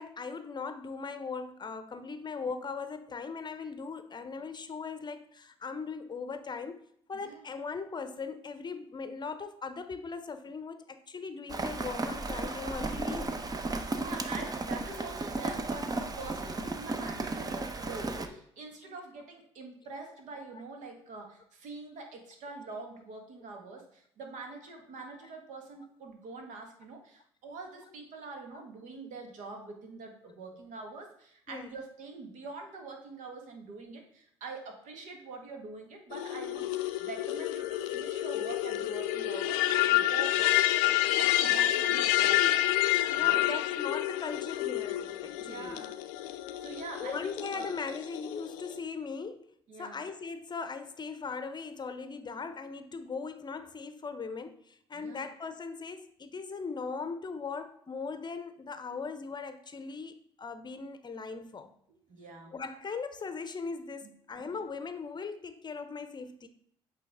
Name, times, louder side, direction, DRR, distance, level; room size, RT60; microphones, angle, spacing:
voice 1, 0.0-6.8 7.1-13.4 18.2-18.4 31.5-31.7 43.1-45.8 46.9-49.5 49.8-61.7 62.5-66.5, left 5 dB, 35° left, 0.7 m, -39 dB
voice 2, 7.1-7.5 13.8-40.5 41.2-42.6 43.1-43.5 45.5-45.9 46.2-47.7 49.7-50.0 54.9-55.3 62.1-62.5 64.4-64.5, right 3 dB, 65° right, 1.5 m, -45 dB
Rain, 11.5-18.3, right 2 dB, 30° right, 0.8 m, -34 dB
sound 1, 36.1-48.8, left 14 dB, 75° left, 0.4 m, -29 dB
8.2 x 3.4 x 3.5 m
hypercardioid pair, 55°, 14 cm